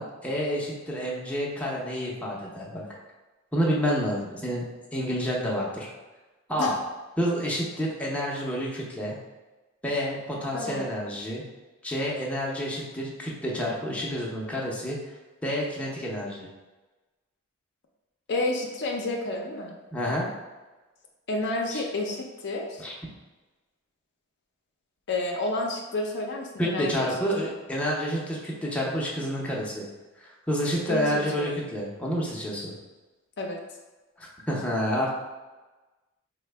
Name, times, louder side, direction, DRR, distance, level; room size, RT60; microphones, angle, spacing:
voice 1, 0.0-3.0 3.5-4.7 4.9-5.9 6.5-6.8 7.2-9.1 9.8-11.4 11.8-15.0 15.4-16.5 19.9-20.3 21.7-21.8 22.8-22.9 26.6-29.8 30.2-32.7 34.2-35.1, equal, 5° left, -4 dB, 0.6 m, -29 dB
voice 2, 10.5-10.9 18.3-19.7 21.3-22.8 25.1-27.1 27.4-27.5 30.9-31.1 31.4-31.6 33.4-33.6, left 2 dB, 55° left, 1 dB, 0.5 m, -30 dB
4.2 x 2.1 x 3.3 m, 1.2 s
head